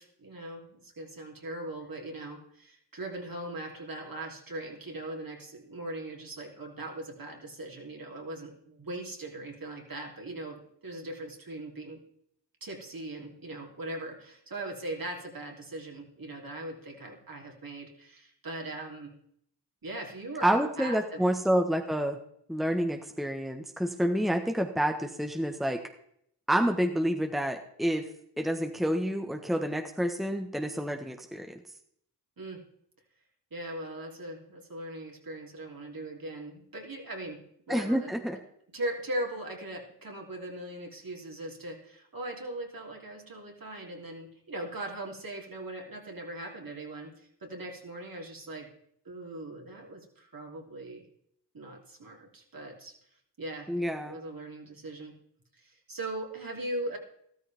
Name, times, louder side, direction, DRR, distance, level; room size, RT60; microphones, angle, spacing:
voice 1, 0.0-12.0 12.6-19.1 19.8-21.2 32.4-32.6 33.5-38.4 38.7-48.7 49.1-51.0 51.5-52.9 53.4-55.1 55.6-57.0, right 1 dB, 55° right, 0 dB, 3.5 m, -40 dB
voice 2, 20.4-22.2 22.5-25.8 26.5-28.0 28.4-31.6 37.7-38.4 53.7-54.2, equal, ahead, 5 dB, 1.4 m, -28 dB
13.5 x 13.0 x 3.6 m, 0.70 s
cardioid pair, 45°, 42 cm